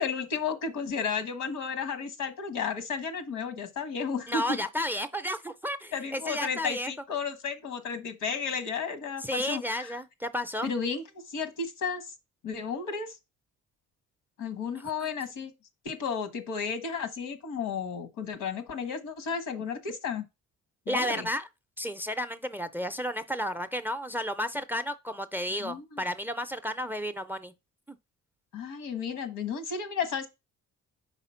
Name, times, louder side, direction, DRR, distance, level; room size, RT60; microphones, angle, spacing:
voice 1, 0.0-4.6 5.9-9.9 10.6-12.1 12.4-13.2 14.4-15.5 15.8-20.2 20.9-21.3 25.6-26.0 28.5-30.3, left 6 dB, 85° left, 1.3 m, -33 dB
voice 2, 4.3-6.9 9.2-10.7 20.9-21.5 21.8-27.5 27.9-28.0, equal, 5° right, 0.4 m, -32 dB
5.0 x 3.8 x 5.6 m
cardioid pair, 90°, 30 cm